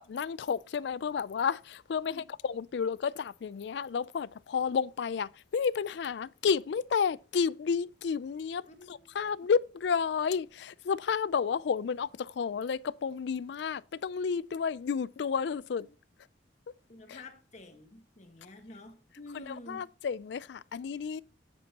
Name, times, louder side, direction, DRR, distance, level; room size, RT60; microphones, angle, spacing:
voice 1, 0.0-8.6 8.9-15.8 17.1-17.2 19.3-21.2, left 6 dB, 65° left, 0.3 m, -31 dB
voice 2, 8.7-9.1 15.8-15.9 16.9-19.9, left 1 dB, 40° left, 1.6 m, -49 dB
9.8 x 8.7 x 2.9 m
head